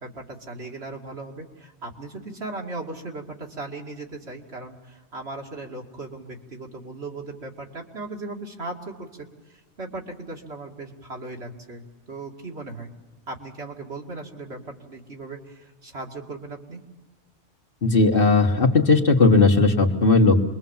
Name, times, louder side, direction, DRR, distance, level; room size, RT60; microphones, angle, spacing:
voice 1, 0.0-12.9 13.3-16.8, right 2 dB, 75° right, 0 dB, 2.8 m, -37 dB
voice 2, 17.8-20.4, left 3 dB, 55° left, 3 dB, 1.8 m, -17 dB
26.5 x 22.0 x 7.3 m, 1.2 s
omnidirectional pair, 1.1 m